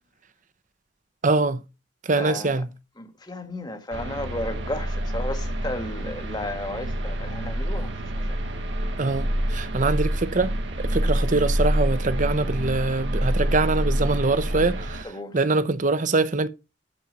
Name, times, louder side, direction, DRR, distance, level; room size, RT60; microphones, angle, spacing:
voice 1, 1.2-1.6 2.1-2.7 9.0-15.1 15.3-16.5, right 3 dB, 45° right, 0.8 m, -24 dB
voice 2, 2.2-2.6 3.0-8.4 15.0-15.4, left 1 dB, 25° left, 1.5 m, -34 dB
sound 1, 3.9-15.0, equal, 70° right, 1.3 m, -27 dB
13.0 x 4.4 x 5.2 m
head